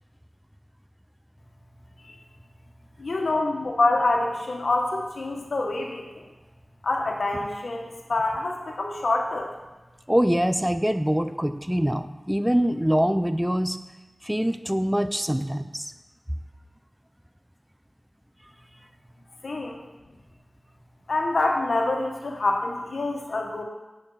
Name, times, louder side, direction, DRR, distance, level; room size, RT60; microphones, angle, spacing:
voice 1, 3.0-6.2 6.8-9.5 19.4-19.8 21.1-23.6, left 2 dB, 80° left, 1 dB, 1.6 m, -26 dB
voice 2, 10.1-13.8 14.2-15.9, equal, 5° right, 10 dB, 0.6 m, -24 dB
9.1 x 6.4 x 5.8 m, 1.2 s
wide cardioid pair, 45°, 0 cm